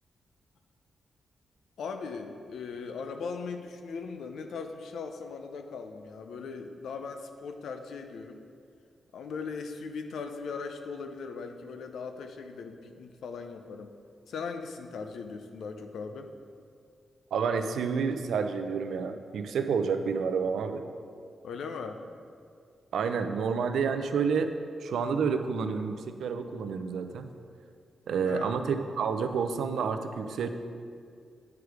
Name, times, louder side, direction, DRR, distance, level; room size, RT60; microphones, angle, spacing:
voice 1, 1.8-8.4 9.1-13.9 14.3-16.3 21.4-22.0 28.2-28.5, left 5 dB, 85° left, 6 dB, 0.5 m, -39 dB
voice 2, 17.3-20.8 22.9-24.5 24.8-27.3 28.1-30.5, right 5 dB, 85° right, 8 dB, 0.5 m, -29 dB
9.6 x 4.7 x 4.9 m, 2.2 s
wide cardioid pair, 155°, 0 cm